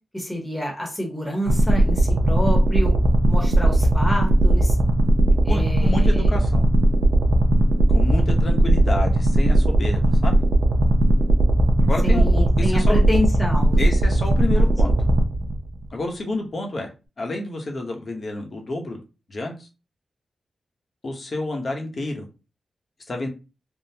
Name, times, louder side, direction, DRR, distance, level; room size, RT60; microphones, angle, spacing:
voice 1, 0.1-3.0 3.2-4.8 5.4-6.4 12.0-13.8 14.3-14.7, left 1 dB, 10° left, 0 dB, 1.0 m, -28 dB
sound 1, 1.5-15.8, right 1 dB, 65° right, 0.6 m, -18 dB
voice 2, 5.5-6.7 7.9-10.3 11.8-13.0 13.8-14.9 15.9-16.9 17.2-19.0 19.3-19.7 21.0-22.3 23.1-23.3, left 2 dB, 50° left, 2 dB, 0.9 m, -29 dB
3.6 x 2.1 x 2.8 m, 0.30 s
wide cardioid pair, 100°, 0 cm